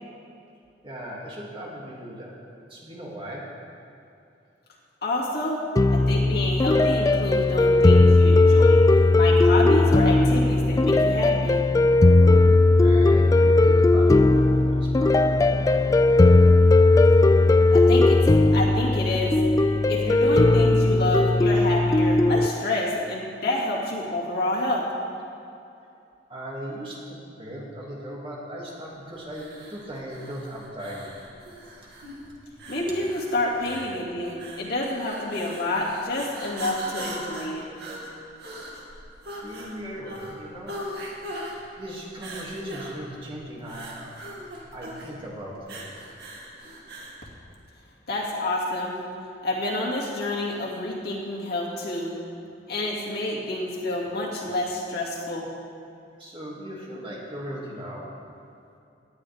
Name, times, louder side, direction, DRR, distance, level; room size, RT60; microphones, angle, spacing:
voice 1, 0.8-2.3 2.6-3.4 12.2-12.5 12.8-16.0 26.3-31.1 31.7-31.8 39.4-40.8 41.8-44.2 44.7-45.9 56.2-58.1, equal, 30° right, -4 dB, 2.4 m, -38 dB
voice 2, 5.0-5.6 5.9-8.8 9.1-11.6 17.7-18.2 18.5-19.3 19.9-24.8 32.7-37.7 48.1-49.0 49.4-52.2 52.7-55.5, left 1 dB, 60° left, -4 dB, 2.3 m, -28 dB
sound 1, 5.8-22.5, left 2 dB, 20° left, 0.3 m, -17 dB
sound 2, 29.3-47.2, right 1 dB, 65° right, 2.4 m, -40 dB
18.0 x 10.5 x 3.5 m, 2.6 s
head